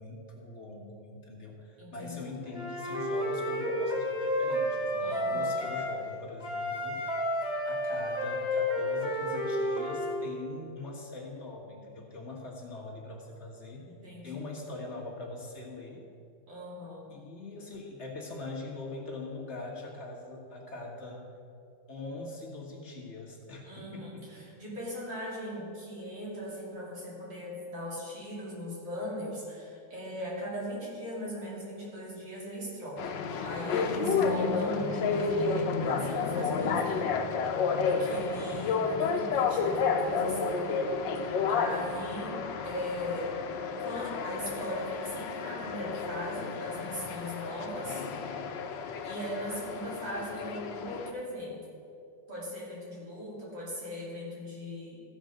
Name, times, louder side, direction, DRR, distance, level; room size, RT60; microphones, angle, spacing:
voice 1, 0.0-7.1 7.6-13.9 14.2-16.1 17.1-21.3 21.9-24.4 38.3-38.6 41.8-41.9, left 2 dB, 40° left, -2 dB, 1.7 m, -42 dB
voice 2, 1.8-2.3 5.0-5.6 14.0-14.4 16.5-17.1 23.7-37.1 37.8-40.9 41.5-43.3 43.8-48.0 49.0-51.6 52.3-55.0, equal, 70° right, -7 dB, 3.8 m, -39 dB
Wind instrument woodwind instrument, 2.5-5.9 6.4-10.2, left 1 dB, ahead, 2.1 m, -31 dB
sound 1, 33.0-51.1, left 5 dB, 75° left, 1.4 m, -31 dB
14.5 x 5.3 x 6.4 m, 2.6 s
omnidirectional pair, 2.1 m